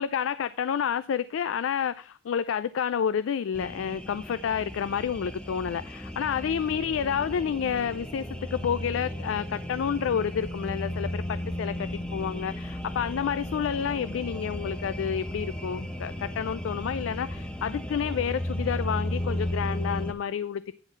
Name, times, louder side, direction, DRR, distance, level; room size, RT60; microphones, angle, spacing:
voice 1, 0.0-20.7, left 7 dB, 90° left, 0.3 m, -29 dB
sound 1, 3.5-20.1, left 1 dB, 5° left, 0.7 m, -35 dB
9.7 x 4.6 x 5.7 m
head